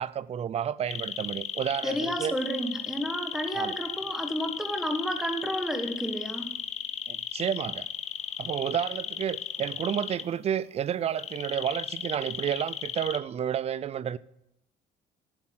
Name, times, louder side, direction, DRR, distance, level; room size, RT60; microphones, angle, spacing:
voice 1, 0.0-2.3 3.5-3.7 7.1-7.9 8.4-14.2, right 9 dB, 40° right, 0.4 m, -31 dB
sound 1, 0.9-10.2 11.2-13.2, left 8 dB, 40° left, 0.7 m, -35 dB
voice 2, 1.8-6.5, equal, 5° right, 1.6 m, -31 dB
12.0 x 4.8 x 5.8 m
cardioid pair, 110°, 17 cm